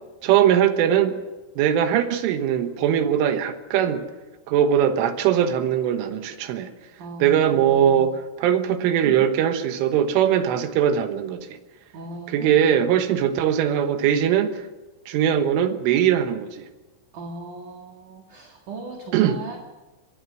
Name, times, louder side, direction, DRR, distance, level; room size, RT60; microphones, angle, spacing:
voice 1, 0.2-1.2 1.6-4.0 4.5-6.7 7.2-11.5 12.3-14.7 15.1-16.7 19.1-19.4, right 9 dB, 75° right, 8 dB, 3.6 m, -21 dB
voice 2, 7.0-8.1 9.0-9.2 11.9-12.8 17.1-19.6, right 2 dB, 55° right, 2 dB, 2.5 m, -38 dB
24.5 x 19.5 x 6.3 m, 1.1 s
omnidirectional pair, 6.0 m